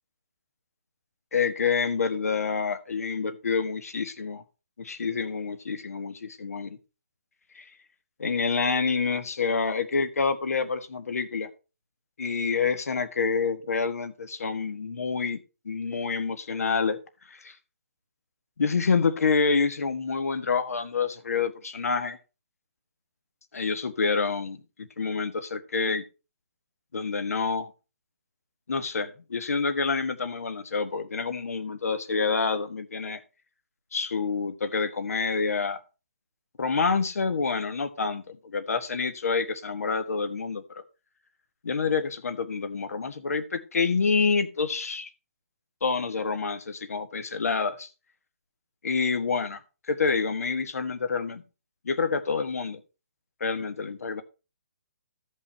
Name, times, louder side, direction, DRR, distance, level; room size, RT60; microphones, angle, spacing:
voice 1, 1.3-4.4 4.8-6.8 7.5-7.6 8.2-11.5 12.2-15.4 15.6-17.0 17.3-17.5 18.6-22.2 23.5-26.0 26.9-27.7 28.7-33.2 33.9-35.8 36.6-40.6 41.6-45.1 45.8-47.9 48.8-49.6 49.9-51.4 51.8-52.8 53.4-54.2, left 5 dB, 70° left, 1.5 m, -27 dB
14.0 x 5.4 x 4.3 m
hypercardioid pair, 175°, 8 cm